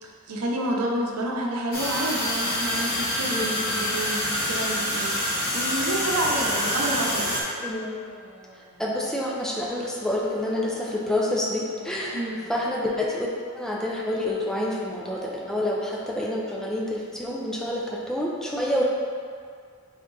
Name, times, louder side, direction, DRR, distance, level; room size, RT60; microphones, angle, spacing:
voice 1, 0.0-7.3 12.1-12.4, right 1 dB, 90° right, -1 dB, 0.7 m, -29 dB
sound 1, 1.7-7.4, equal, 45° left, 1.0 m, -26 dB
sound 2, 6.3-9.0 9.7-13.2, left 2 dB, 80° left, 0.8 m, -45 dB
voice 2, 8.8-12.2 12.5-13.3 13.5-18.9, left 1 dB, ahead, -4 dB, 0.4 m, -28 dB
3.9 x 3.5 x 3.8 m, 2.2 s
head